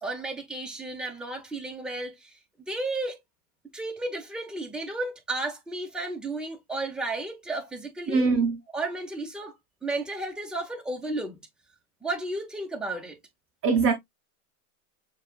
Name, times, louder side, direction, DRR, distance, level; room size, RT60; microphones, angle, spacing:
voice 1, 0.0-3.2 3.7-8.3 8.7-9.5 9.8-11.4 12.0-13.2, right 2 dB, ahead, 1.0 m, -33 dB
voice 2, 8.1-8.6 13.6-13.9, right 4 dB, 30° right, 0.7 m, -22 dB
6.4 x 2.5 x 2.4 m
hypercardioid pair, 115°, 45 cm